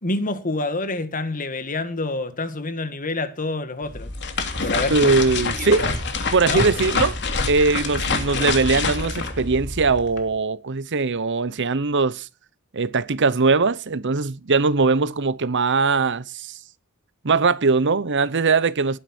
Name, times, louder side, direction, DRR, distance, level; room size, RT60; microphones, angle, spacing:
voice 1, 0.0-4.1 4.6-5.1 5.5-5.9 6.4-6.6, left 2 dB, 40° left, 1.8 m, -27 dB
sound 1, 3.8-10.2, left 4 dB, 55° left, 3.1 m, -26 dB
voice 2, 4.9-5.9 6.3-7.2 7.5-12.3 12.7-16.6 17.2-19.0, right 4 dB, 55° right, 0.9 m, -21 dB
19.5 x 9.7 x 4.4 m
head